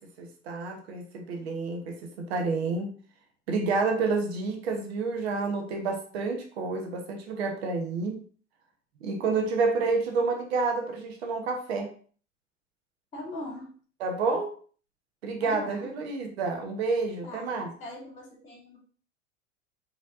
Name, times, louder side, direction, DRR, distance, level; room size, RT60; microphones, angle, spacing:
voice 1, 0.0-2.9 3.5-8.2 9.0-11.9 14.0-14.5 15.2-17.7, right 4 dB, 55° right, 3 dB, 1.2 m, -29 dB
voice 2, 13.1-13.7 15.4-15.9 17.2-18.8, left 1 dB, 20° left, -4 dB, 2.3 m, -41 dB
5.3 x 3.3 x 2.6 m, 0.44 s
figure-of-eight pair, 85°, 38 cm